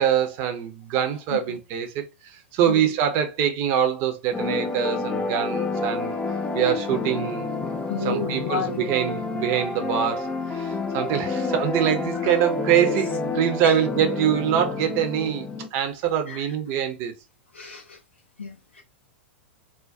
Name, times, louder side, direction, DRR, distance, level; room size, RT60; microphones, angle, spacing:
voice 1, 0.0-6.2 6.5-7.5 8.0-17.1, right 9 dB, 45° right, 0.6 m, -24 dB
sound 1, 4.3-15.7, left 4 dB, 15° left, 0.4 m, -29 dB
voice 2, 7.9-8.8 12.2-12.4 12.9-13.0 13.6-13.8 16.3-16.6 17.5-18.0 18.4-18.8, left 5 dB, 85° left, 0.4 m, -32 dB
2.3 x 2.1 x 2.5 m
figure-of-eight pair, 95°, 6 cm